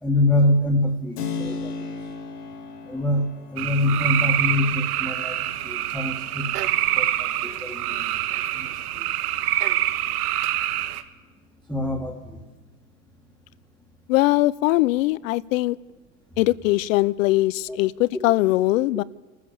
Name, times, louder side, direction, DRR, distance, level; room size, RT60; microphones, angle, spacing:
voice 1, 0.0-1.9 2.9-6.7 6.9-8.1 8.5-8.7 8.9-9.0 11.7-12.4 17.7-17.8, left 1 dB, ahead, 0 dB, 1.8 m, -25 dB
Keyboard (musical), 1.2-9.7, left 4 dB, 85° left, 3.3 m, -38 dB
sound 1, 3.6-11.0, right 13 dB, 70° right, 1.6 m, -25 dB
voice 2, 14.1-15.8 16.4-19.0, left 18 dB, 55° left, 21 dB, 0.7 m, -21 dB
27.0 x 14.5 x 7.1 m, 1.3 s
supercardioid pair, 135°, 47 cm